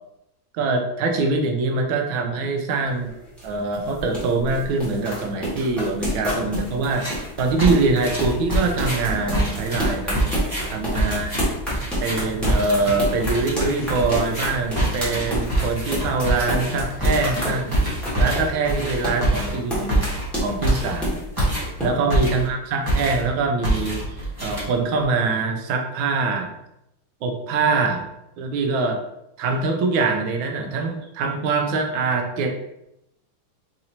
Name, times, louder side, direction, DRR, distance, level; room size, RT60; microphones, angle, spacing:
voice 1, 0.5-3.1 3.4-7.1 7.4-10.3 10.7-11.3 12.0-17.7 18.1-20.1 20.4-21.2 21.8-24.0 24.4-26.6 27.2-28.1 28.4-29.0 29.4-32.7, right 3 dB, 80° right, 4 dB, 1.4 m, -23 dB
sound 1, 2.9-21.9, equal, ahead, 0.8 m, -28 dB
sound 2, 6.9-7.3 7.6-22.6 22.9-23.3 23.6-25.0, right 1 dB, 25° right, 0.4 m, -25 dB
4.1 x 2.6 x 2.8 m, 0.84 s
omnidirectional pair, 2.3 m